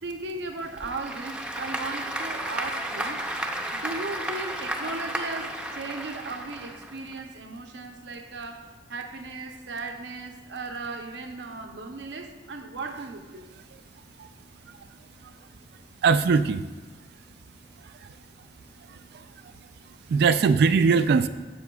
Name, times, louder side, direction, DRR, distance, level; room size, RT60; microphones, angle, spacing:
voice 1, 0.0-3.2 3.7-13.5 15.2-15.3, right 3 dB, 80° right, 0.7 m, -37 dB
Applause / Crowd, 0.6-7.2, right 1 dB, 5° right, 0.5 m, -33 dB
voice 2, 16.0-16.6 20.1-21.3, right 5 dB, 60° right, 0.3 m, -20 dB
10.5 x 7.3 x 2.3 m
head